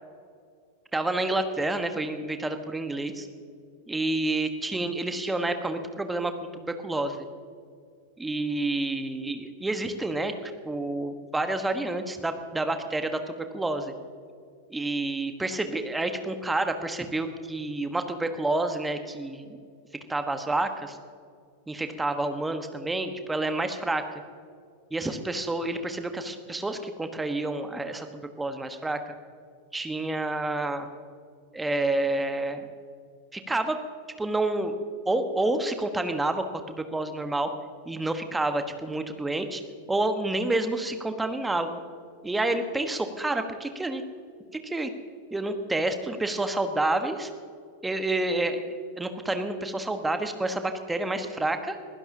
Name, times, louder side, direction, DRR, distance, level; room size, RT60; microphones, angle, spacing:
voice 1, 0.9-3.3 3.9-7.3 8.2-13.9 14.7-19.6 20.1-21.0 21.7-24.0 24.9-29.1 29.7-30.9 31.5-32.7 33.3-33.8 34.2-34.8 35.0-37.5 37.8-39.6 39.9-41.8 42.2-44.0 44.6-44.9 45.3-47.3 47.8-51.8, right 2 dB, 10° right, 7 dB, 1.3 m, -29 dB
22.0 x 16.0 x 2.8 m, 2.2 s
figure-of-eight pair, 90°, 0 cm